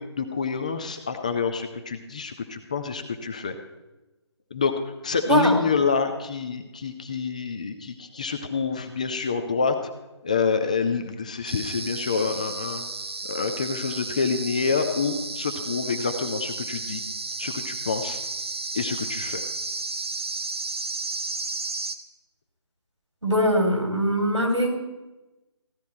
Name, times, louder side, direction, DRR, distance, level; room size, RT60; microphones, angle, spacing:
voice 1, 0.0-3.6 4.5-4.7 5.0-9.7 10.2-12.9 13.3-17.0 17.4-18.2 18.7-19.4, left 5 dB, 15° left, 7 dB, 0.4 m, -27 dB
voice 2, 5.3-5.6 23.2-24.8, equal, 85° right, 2 dB, 3.4 m, -22 dB
sound 1, 11.5-22.0, right 3 dB, 60° right, 1.0 m, -33 dB
15.0 x 10.5 x 4.3 m, 1.1 s
figure-of-eight pair, 150°, 15 cm